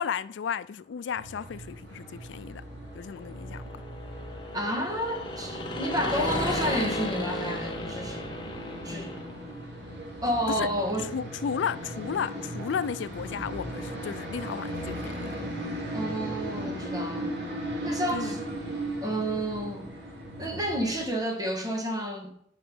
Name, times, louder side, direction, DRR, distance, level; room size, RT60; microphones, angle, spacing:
voice 1, 0.0-2.6 2.9-3.7 10.6-10.7 11.1-15.4 18.1-18.4, left 7 dB, 90° left, 0.4 m, -33 dB
sound 1, 1.1-21.0, equal, 75° right, 2.3 m, -37 dB
sound 2, 2.7-9.7, left 1 dB, 25° left, 1.1 m, -34 dB
voice 2, 4.5-8.2 8.8-9.2 10.2-11.1 15.9-17.3 17.8-18.4 19.0-19.9 20.4-22.3, equal, 20° right, 1.6 m, -30 dB
6.2 x 5.9 x 5.3 m
head